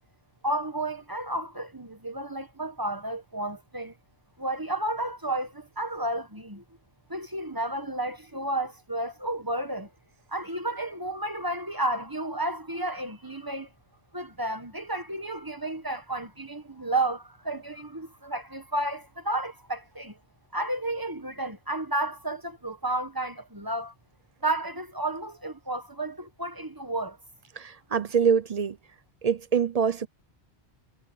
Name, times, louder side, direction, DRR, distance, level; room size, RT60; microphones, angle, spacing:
voice 1, 0.4-3.9 4.4-6.6 7.1-9.9 10.3-13.7 14.1-20.2 20.5-23.9 24.4-27.2, right 1 dB, 20° right, 1.4 m, -32 dB
voice 2, 27.6-28.8 29.2-30.1, right 6 dB, 45° right, 0.6 m, -25 dB
omnidirectional pair, 1.1 m